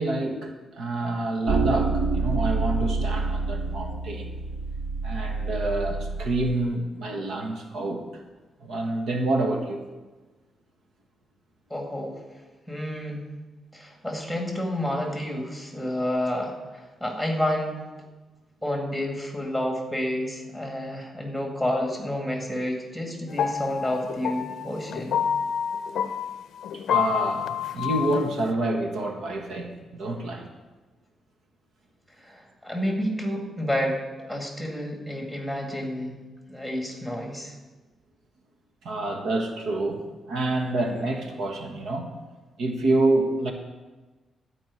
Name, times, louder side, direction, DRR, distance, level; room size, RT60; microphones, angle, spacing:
voice 1, 0.0-4.3 5.0-8.2 8.6-9.9 26.7-30.5 38.8-42.1 42.6-43.5, right 2 dB, 85° right, 2 dB, 1.5 m, -27 dB
sound 1, 1.5-6.6, right 3 dB, 65° right, 0.8 m, -27 dB
voice 2, 11.7-12.2 12.7-13.3 13.7-17.8 18.6-25.2 32.2-34.0 34.3-36.2 36.5-37.6, left 1 dB, ahead, 1 dB, 2.1 m, -30 dB
sound 2, 23.3-28.5, left 8 dB, 75° left, 0.5 m, -28 dB
13.5 x 5.2 x 8.4 m, 1.2 s
cardioid pair, 140°, 0 cm